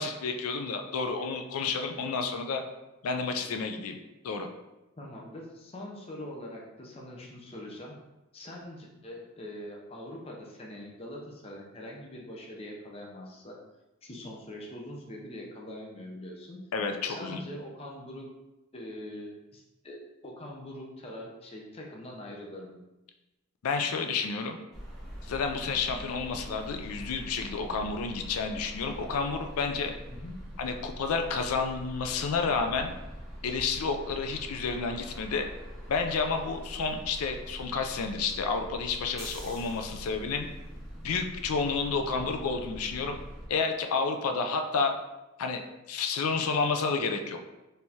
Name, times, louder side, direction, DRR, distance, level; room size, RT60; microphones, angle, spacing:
voice 1, 0.0-2.6 3.0-4.0 4.2-4.5 16.7-17.4 23.6-24.6 25.2-29.9 30.6-32.9 33.4-35.5 35.9-40.5 41.0-43.2 43.5-44.9 45.4-45.6 45.9-47.4, left 4 dB, 85° left, 6 dB, 0.4 m, -30 dB
voice 2, 5.0-8.0 8.3-13.6 14.0-16.6 17.0-18.3 18.7-20.0 20.2-22.8 30.1-30.4, left 1 dB, 25° left, -1 dB, 0.6 m, -43 dB
sound 1, 24.7-43.5, equal, ahead, 0.9 m, -43 dB
4.5 x 3.3 x 2.8 m, 1.0 s
head